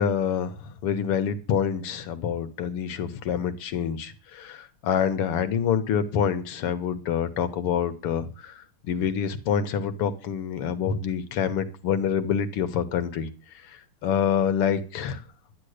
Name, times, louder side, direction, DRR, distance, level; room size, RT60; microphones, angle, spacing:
voice 1, 0.0-13.3 13.7-15.2, left 7 dB, 90° left, 11 dB, 2.2 m, -27 dB
11.5 x 10.0 x 6.6 m, 0.37 s
omnidirectional pair, 2.4 m